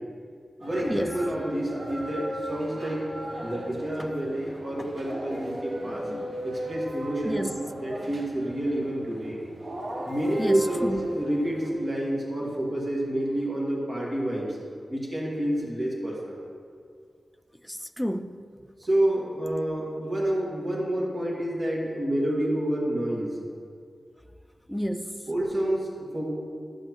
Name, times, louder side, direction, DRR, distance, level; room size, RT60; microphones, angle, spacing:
voice 1, 0.6-3.0 3.4-6.0 6.4-7.5 7.8-9.4 10.1-14.6 14.9-16.5 18.8-23.4 25.3-26.3, right 1 dB, 40° right, -4 dB, 2.0 m, -28 dB
sound 1, 0.6-11.7, equal, 55° right, 1.4 m, -37 dB
voice 2, 7.3-7.6 10.4-11.1 17.7-18.4 24.7-25.2, equal, ahead, 8 dB, 0.3 m, -30 dB
10.5 x 8.0 x 3.1 m, 2.2 s
wide cardioid pair, 120°, 0 cm